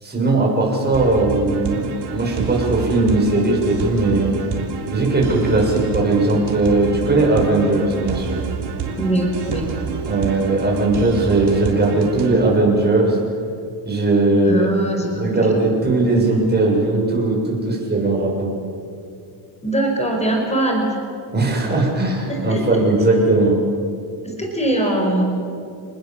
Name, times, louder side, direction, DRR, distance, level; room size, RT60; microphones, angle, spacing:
voice 1, 0.0-4.4 4.9-8.4 10.1-13.2 13.9-14.7 15.1-18.5 21.3-23.6, right 2 dB, 20° right, -1 dB, 7.0 m, -18 dB
sound 1, 0.9-12.4, right 5 dB, 55° right, 3.5 m, -28 dB
voice 2, 9.0-9.7 14.4-15.3 19.6-20.9 22.3-22.8 24.2-25.2, right 1 dB, 15° left, 1 dB, 5.5 m, -22 dB
30.0 x 19.5 x 7.5 m, 2.5 s
cardioid pair, 125°, 49 cm